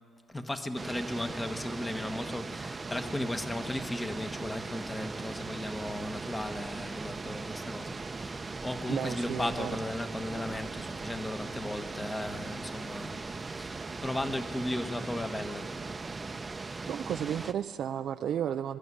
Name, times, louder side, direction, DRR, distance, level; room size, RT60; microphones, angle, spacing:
voice 1, 0.3-15.8, left 1 dB, 15° left, 9 dB, 1.3 m, -36 dB
sound 1, 0.8-17.5, right 3 dB, 25° right, 0.7 m, -39 dB
voice 2, 8.9-9.7 16.9-18.8, right 9 dB, 70° right, 8 dB, 0.4 m, -33 dB
23.5 x 12.5 x 9.8 m, 2.2 s
cardioid pair, 90°, 0 cm